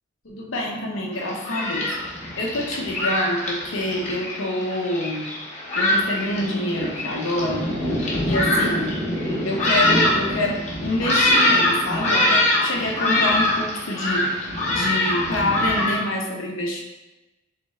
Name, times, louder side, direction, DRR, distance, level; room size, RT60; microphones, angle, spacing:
voice 1, 0.2-1.9 2.4-5.2 5.7-7.7 8.2-8.9 9.4-16.8, left 1 dB, 85° left, -1 dB, 0.8 m, -27 dB
Thunderstorm, 1.1-16.0, left 1 dB, 35° left, 0.9 m, -23 dB
3.6 x 3.3 x 3.2 m, 1.1 s
head